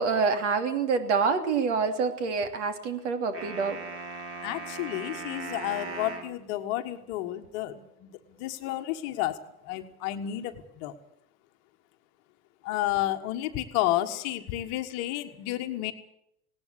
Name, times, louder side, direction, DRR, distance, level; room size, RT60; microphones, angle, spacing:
voice 1, 0.0-3.8, right 5 dB, 50° right, 9 dB, 3.0 m, -26 dB
sound 1, 3.3-6.3, right 4 dB, 30° right, 3.9 m, -38 dB
voice 2, 4.4-10.9 12.6-15.9, left 14 dB, 35° left, 7 dB, 1.6 m, -31 dB
19.5 x 18.0 x 8.2 m, 0.76 s
figure-of-eight pair, 95°, 44 cm